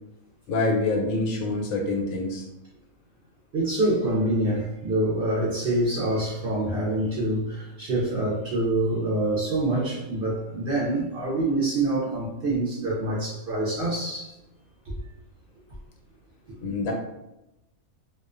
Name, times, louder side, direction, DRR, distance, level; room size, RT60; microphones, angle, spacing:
voice 1, 0.5-2.4 16.6-16.9, left 2 dB, 85° left, 1 dB, 1.0 m, -26 dB
voice 2, 3.5-14.3 14.9-15.0, right 1 dB, 65° right, -6 dB, 0.6 m, -26 dB
2.3 x 2.2 x 2.4 m, 0.93 s
omnidirectional pair, 1.4 m